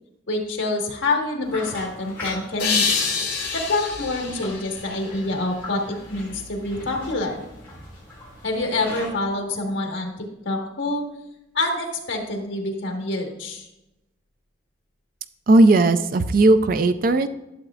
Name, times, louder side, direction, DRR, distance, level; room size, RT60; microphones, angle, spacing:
voice 1, 0.3-2.9 3.5-7.4 8.4-11.0 11.5-13.7, left 2 dB, 75° left, 1 dB, 1.6 m, -26 dB
sound 1, 1.4-9.1, left 1 dB, 10° left, 3.3 m, -40 dB
sound 2, 2.6-5.7, left 5 dB, 55° left, 2.3 m, -27 dB
voice 2, 15.5-17.3, right 2 dB, 45° right, 10 dB, 0.4 m, -16 dB
12.0 x 7.0 x 2.4 m, 0.91 s
head